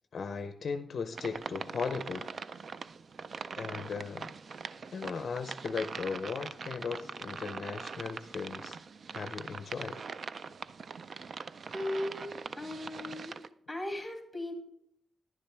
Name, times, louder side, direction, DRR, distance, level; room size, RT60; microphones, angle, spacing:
voice 1, 0.0-2.3 3.6-4.3 4.9-8.8 9.1-10.0, left 5 dB, 50° left, 8 dB, 0.5 m, -37 dB
sound 1, 1.1-13.5, right 5 dB, 45° right, 0.3 m, -42 dB
voice 2, 11.7-13.3 13.7-14.5, left 1 dB, ahead, 3 dB, 1.9 m, -37 dB
10.5 x 10.0 x 3.3 m, 0.71 s
wide cardioid pair, 155°, 0 cm